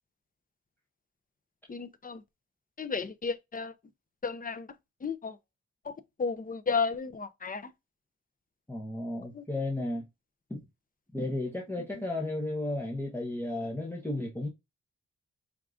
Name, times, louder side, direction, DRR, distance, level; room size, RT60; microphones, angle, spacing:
voice 1, 1.7-2.2 2.8-3.7 4.2-4.7 5.0-5.4 5.8-5.9 6.2-7.7 9.3-9.4 12.0-12.1, left 5 dB, 30° left, 0.5 m, -33 dB
voice 2, 8.7-10.1 10.5-10.6 11.1-14.5, left 1 dB, 5° left, 0.9 m, -33 dB
4.7 x 3.6 x 2.5 m
wide cardioid pair, 125°, 29 cm